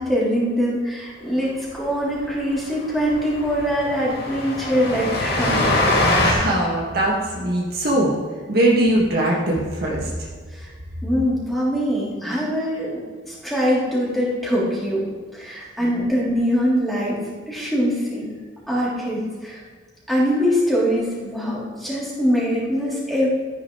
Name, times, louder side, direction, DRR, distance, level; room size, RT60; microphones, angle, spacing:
voice 1, 0.0-5.8 10.5-10.7 11.0-15.0 15.3-17.2 17.5-18.3 18.7-19.6 20.1-23.4, equal, ahead, -8 dB, 3.0 m, -23 dB
Train, 1.7-1.8 2.1-2.2 2.5-2.6 3.0-6.3, left 1 dB, 50° left, 2.2 m, -23 dB
voice 2, 6.2-8.1 8.5-10.3 15.8-16.1, right 1 dB, 50° right, -3 dB, 1.7 m, -21 dB
13.5 x 10.0 x 3.2 m, 1.5 s
head